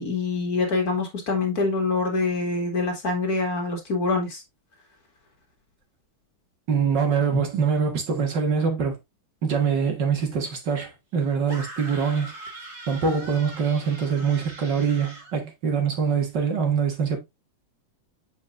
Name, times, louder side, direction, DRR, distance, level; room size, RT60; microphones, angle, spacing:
voice 1, 0.0-4.4, left 3 dB, 50° left, 2.3 m, -25 dB
voice 2, 6.7-9.0 9.4-12.3 12.9-17.2, right 6 dB, 60° right, 2.2 m, -24 dB
sound 1, 11.5-15.3, right 2 dB, 35° right, 2.3 m, -41 dB
7.4 x 5.3 x 2.6 m
omnidirectional pair, 2.1 m